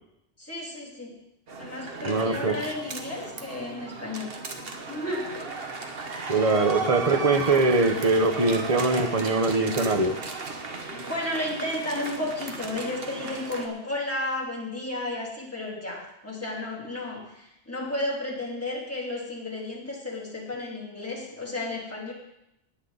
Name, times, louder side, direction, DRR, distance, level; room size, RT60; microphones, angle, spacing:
voice 1, 0.4-1.2 1.6-5.6 10.8-22.1, left 2 dB, 10° left, -4 dB, 3.0 m, -33 dB
The Unveiling, 1.5-13.7, right 3 dB, 55° right, 1.4 m, -36 dB
voice 2, 2.0-2.6 6.3-10.2, right 3 dB, 30° right, 6 dB, 1.0 m, -22 dB
19.0 x 8.1 x 4.0 m, 0.86 s
omnidirectional pair, 1.2 m